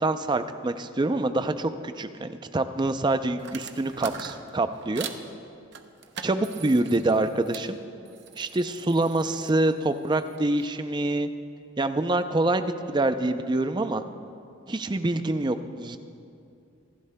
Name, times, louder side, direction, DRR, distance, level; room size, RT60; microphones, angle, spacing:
voice 1, 0.0-5.1 6.2-7.8 8.4-11.3 11.8-14.0 14.7-16.0, right 2 dB, 20° right, 9 dB, 0.4 m, -26 dB
sound 1, 3.4-5.2 5.7-7.7 8.0-10.7, right 6 dB, 55° right, 0.7 m, -42 dB
26.0 x 12.0 x 2.2 m, 2.6 s
head